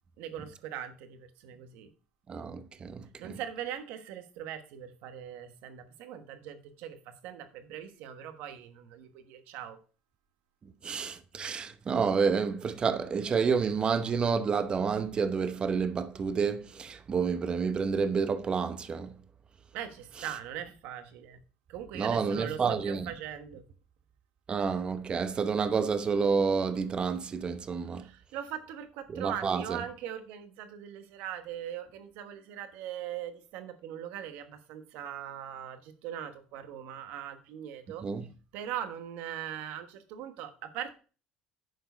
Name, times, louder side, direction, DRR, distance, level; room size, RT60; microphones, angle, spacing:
voice 1, 0.2-1.9 3.2-9.8 19.7-21.4 21.7-22.6 22.8-23.6 28.0-38.0 38.5-40.9, right 10 dB, 80° right, 1.3 m, -40 dB
voice 2, 2.3-3.4 10.6-19.1 21.9-23.1 24.5-28.0 29.1-29.8 38.0-38.3, right 5 dB, 35° right, 0.9 m, -29 dB
11.0 x 4.7 x 4.5 m
supercardioid pair, 105°, 3 cm